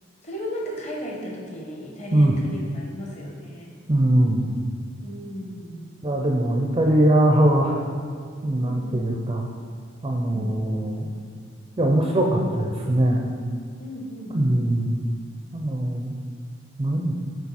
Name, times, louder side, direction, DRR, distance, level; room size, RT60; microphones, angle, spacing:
voice 1, 0.2-3.7 5.0-6.2 8.6-9.0 10.3-10.5 13.8-14.6, equal, 35° left, -2 dB, 1.1 m, -35 dB
voice 2, 3.9-4.5 6.0-7.8 8.4-9.5 10.0-11.1 11.8-13.3 14.3-15.0 15.5-16.2 16.8-17.1, right 1 dB, 25° right, 0 dB, 0.4 m, -21 dB
7.1 x 3.9 x 4.1 m, 2.2 s
head